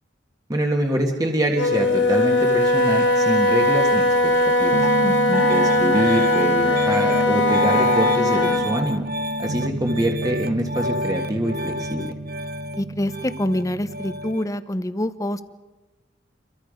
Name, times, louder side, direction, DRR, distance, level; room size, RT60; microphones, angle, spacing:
voice 1, 0.5-4.9 5.5-9.1 9.4-12.1, equal, 20° right, 2 dB, 1.6 m, -25 dB
Wind instrument woodwind instrument, 1.5-8.7, left 1 dB, 75° left, 3.1 m, -19 dB
Piano, 4.7-14.4, equal, 50° right, 0.9 m, -27 dB
voice 2, 5.0-5.5 12.8-15.4, left 1 dB, 15° left, 12 dB, 0.8 m, -26 dB
29.0 x 23.5 x 5.2 m, 1.2 s
head